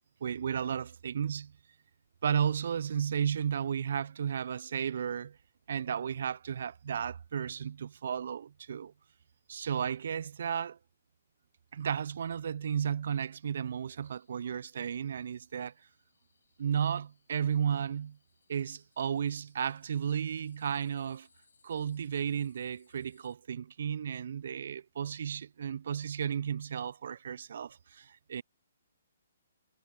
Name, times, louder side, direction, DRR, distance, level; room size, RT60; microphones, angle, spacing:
voice 1, 0.2-1.5 2.2-5.4 5.7-8.9 9.5-10.8 11.7-15.7 16.6-18.2 18.5-21.3 21.6-28.4, right 8 dB, 60° right, 0.3 m, -33 dB
sound 1, 14.0-23.3, left 5 dB, 85° left, 3.6 m, -70 dB
hypercardioid pair, 150°, 0 cm